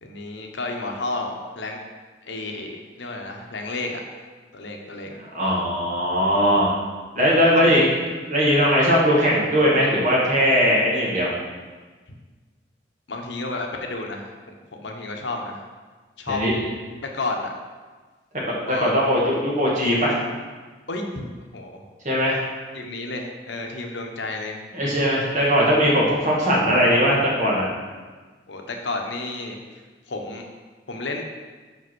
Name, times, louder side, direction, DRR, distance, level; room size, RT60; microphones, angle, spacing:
voice 1, 0.0-1.8 2.2-4.0 4.5-5.1 7.3-7.9 8.6-8.7 13.1-14.2 14.8-15.6 16.2-16.4 17.1-17.5 18.7-18.9 20.9-21.3 21.5-21.8 22.7-24.6 27.1-27.2 28.5-29.8 30.1-30.4 30.9-31.2, left 2 dB, 80° left, 2 dB, 1.0 m, -31 dB
voice 2, 5.1-6.7 7.1-7.9 8.3-11.3 16.3-16.6 18.5-20.2 22.0-22.4 24.7-27.7, equal, 40° right, -5 dB, 2.0 m, -20 dB
5.4 x 5.4 x 6.2 m, 1.4 s
head